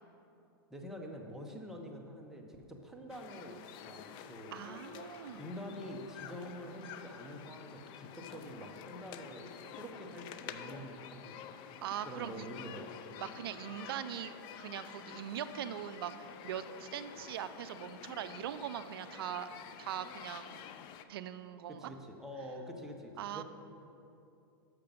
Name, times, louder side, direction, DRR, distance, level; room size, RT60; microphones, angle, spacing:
voice 1, 0.7-4.6 5.3-11.5 12.0-12.9 21.7-23.4, equal, 5° right, 1 dB, 0.8 m, -46 dB
sound 1, 3.1-21.0, left 9 dB, 35° left, 0.4 m, -49 dB
voice 2, 4.5-5.5 11.8-12.5 13.2-14.3 14.6-19.5 19.8-20.6 21.1-21.9 23.2-23.4, right 10 dB, 70° right, 12 dB, 0.4 m, -41 dB
6.7 x 5.9 x 5.3 m, 2.7 s
hypercardioid pair, 125°, 13 cm